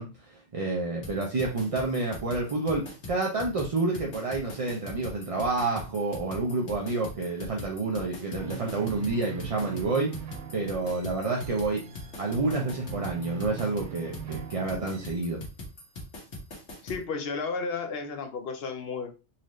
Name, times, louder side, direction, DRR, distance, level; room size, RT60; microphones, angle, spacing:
voice 1, 0.0-11.8 12.2-15.4, right 3 dB, 40° right, -1 dB, 0.5 m, -29 dB
sound 1, 1.0-17.0, left 1 dB, 85° left, 1.6 m, -42 dB
sound 2, 8.4-15.2, right 9 dB, 85° right, 0.9 m, -41 dB
voice 2, 16.8-19.1, left 4 dB, 65° left, 7 dB, 0.8 m, -33 dB
4.1 x 2.5 x 3.0 m, 0.31 s
omnidirectional pair, 1.2 m